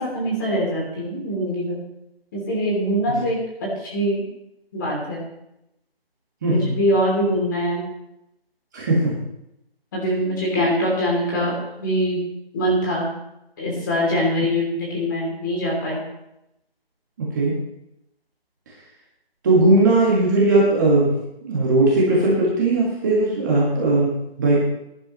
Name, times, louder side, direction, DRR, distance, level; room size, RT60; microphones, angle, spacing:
voice 1, 0.0-1.8 2.3-4.2 4.7-5.2 6.5-7.8 9.9-12.2 12.5-13.1 13.6-16.0, equal, 20° left, -3 dB, 3.0 m, -23 dB
voice 2, 6.4-6.8 8.7-9.1 17.2-17.5 19.4-21.1 21.4-24.1 24.4-24.6, right 2 dB, 20° right, -6 dB, 1.9 m, -18 dB
19.0 x 11.0 x 3.1 m, 0.84 s
figure-of-eight pair, 165°, 31 cm